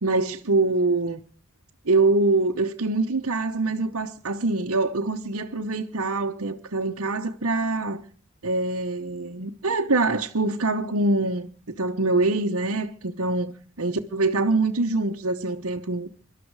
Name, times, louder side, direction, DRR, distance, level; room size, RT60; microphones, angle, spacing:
voice 1, 0.0-1.2 1.8-8.0 8.4-13.5 13.8-16.1, right 2 dB, 65° right, 1.0 m, -24 dB
25.0 x 12.0 x 4.8 m
head